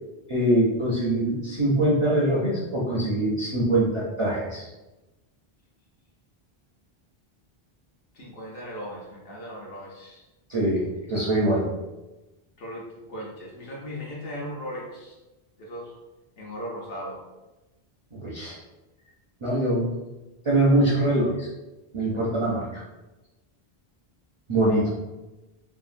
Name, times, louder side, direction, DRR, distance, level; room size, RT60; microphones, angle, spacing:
voice 1, 0.3-4.7 10.5-10.8 11.1-11.7 18.1-18.6 19.4-19.9 20.4-21.5 21.9-22.8 24.5-24.9, right 1 dB, 45° right, -5 dB, 0.4 m, -23 dB
voice 2, 8.1-10.2 12.6-15.2 15.6-16.0 16.4-17.2, equal, 65° left, -3 dB, 0.9 m, -37 dB
2.9 x 2.5 x 2.5 m, 1.0 s
omnidirectional pair, 1.1 m